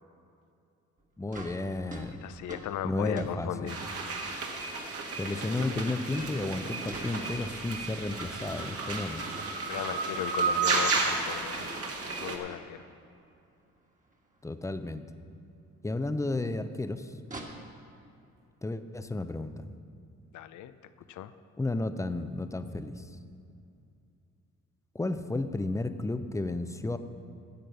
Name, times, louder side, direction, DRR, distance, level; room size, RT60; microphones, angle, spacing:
sound 1, 1.0-1.1 1.3-4.0 5.6-7.9 8.3-9.0 9.3-9.4 9.8-9.9 10.2-10.3 10.4-10.6 10.8-13.3 13.6-13.7 14.0-14.2 15.3-15.4 17.2-17.4, right 2 dB, 25° right, 1.6 m, -47 dB
voice 1, 1.2-2.2 2.8-3.7 5.2-9.3 14.4-15.0 15.8-17.1 18.6-19.7 21.6-23.1 24.9-27.0, left 2 dB, 10° left, 10 dB, 0.6 m, -32 dB
voice 2, 2.2-3.8 9.7-11.7 12.2-12.9 20.3-20.7 21.1-21.3, left 11 dB, 75° left, 13 dB, 0.6 m, -37 dB
sound 2, 3.7-12.4, right 3 dB, 50° right, 1.6 m, -32 dB
10.5 x 7.5 x 6.9 m, 2.6 s
cardioid pair, 90°, 30 cm